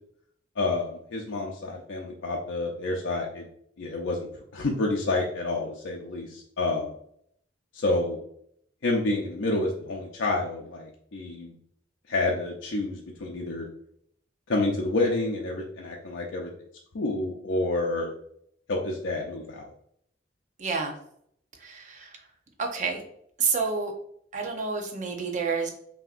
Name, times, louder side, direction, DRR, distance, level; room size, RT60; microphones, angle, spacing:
voice 1, 0.6-3.5 3.8-4.3 4.5-6.9 7.7-8.2 8.8-11.5 12.1-13.6 14.5-16.5 16.9-18.1 18.7-19.7, left 2 dB, 80° left, -1 dB, 0.6 m, -29 dB
voice 2, 20.6-20.9 21.6-22.1 22.6-23.0 23.4-23.9 24.3-25.7, right 4 dB, 40° right, 3 dB, 0.8 m, -29 dB
5.5 x 2.8 x 2.5 m, 0.68 s
head